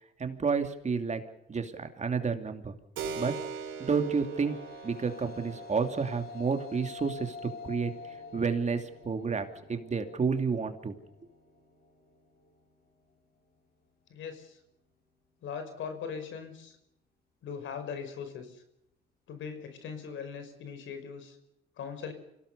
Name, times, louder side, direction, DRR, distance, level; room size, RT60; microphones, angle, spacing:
voice 1, 0.2-1.2 1.5-2.8 3.2-3.3 3.8-4.6 4.8-7.4 7.6-7.9 8.3-10.9, right 5 dB, 35° right, 6 dB, 2.9 m, -30 dB
Keyboard (musical), 3.0-11.2, right 5 dB, 80° right, 4.4 m, -44 dB
sound 1, 4.0-12.6, left 5 dB, 50° left, 3.4 m, -47 dB
voice 2, 14.1-14.6 15.4-16.8 17.4-18.6 19.3-21.4 21.8-22.1, left 6 dB, 75° left, 8 dB, 5.4 m, -40 dB
26.0 x 17.5 x 6.9 m, 0.81 s
cardioid pair, 90°, 20 cm